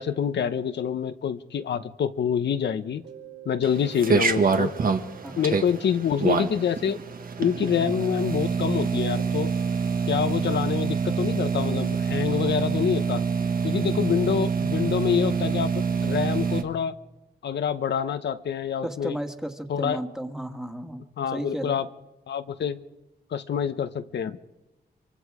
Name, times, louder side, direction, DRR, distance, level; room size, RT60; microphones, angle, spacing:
voice 1, 0.0-3.0 3.4-4.7 5.4-7.0 7.4-9.5 10.1-13.2 13.6-16.9 17.4-19.2 19.7-20.0 21.2-21.9 22.3-22.8 23.3-24.4, left 8 dB, 80° left, 10 dB, 0.9 m, -26 dB
Mallet percussion, 3.0-11.6, right 12 dB, 75° right, 7.5 m, -50 dB
sound 1, 3.6-16.6, right 5 dB, 55° right, 1.6 m, -26 dB
voice 2, 18.8-21.8, right 1 dB, 5° right, 5 dB, 1.8 m, -34 dB
24.5 x 24.5 x 4.9 m, 1.0 s
cardioid pair, 90°, 18 cm